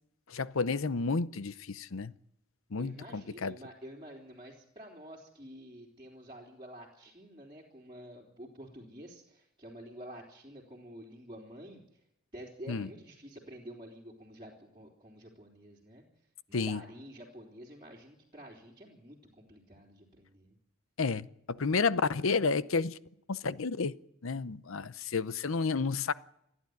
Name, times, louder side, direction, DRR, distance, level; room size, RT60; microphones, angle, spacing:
voice 1, 0.3-2.1 2.7-3.6 12.7-12.9 16.5-16.8 21.0-23.0 23.3-24.0 24.2-26.1, left 4 dB, 70° left, 0.7 m, -31 dB
voice 2, 2.8-12.0 12.3-16.0 16.5-20.6, equal, 25° right, 3.6 m, -49 dB
29.0 x 11.0 x 9.4 m
head